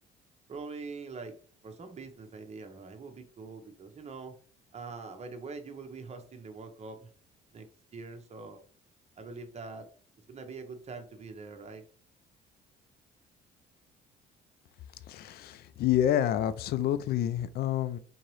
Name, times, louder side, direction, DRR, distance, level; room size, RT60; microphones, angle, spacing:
voice 1, 0.5-1.4 1.6-4.3 4.7-7.1 7.5-8.6 9.2-9.9 10.3-11.8, right 4 dB, 35° right, 6 dB, 0.9 m, -43 dB
voice 2, 15.1-18.0, left 11 dB, 60° left, 13 dB, 0.4 m, -28 dB
3.8 x 2.8 x 3.1 m, 0.43 s
supercardioid pair, 80°, 18 cm